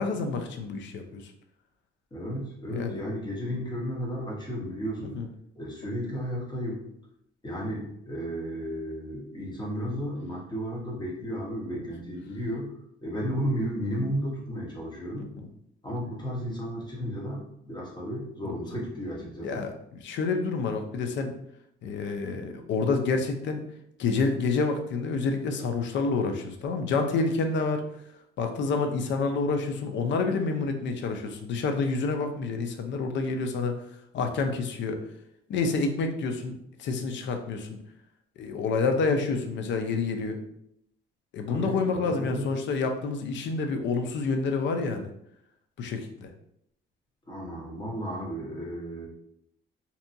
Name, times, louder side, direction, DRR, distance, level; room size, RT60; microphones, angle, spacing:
voice 1, 0.0-1.3 2.7-3.0 5.0-5.3 11.7-11.8 15.2-15.5 18.5-18.6 19.4-21.3 21.8-23.6 24.0-27.8 28.4-33.8 34.1-35.0 35.5-37.8 38.4-40.4 41.3-45.1 45.8-46.3, left 4 dB, 65° left, 5 dB, 0.5 m, -28 dB
voice 2, 2.1-5.2 5.5-6.8 7.4-15.3 15.8-19.6 41.5-42.5 47.3-49.1, equal, 20° left, -3 dB, 1.0 m, -33 dB
2.7 x 2.2 x 2.5 m, 0.74 s
cardioid pair, 90°, 20 cm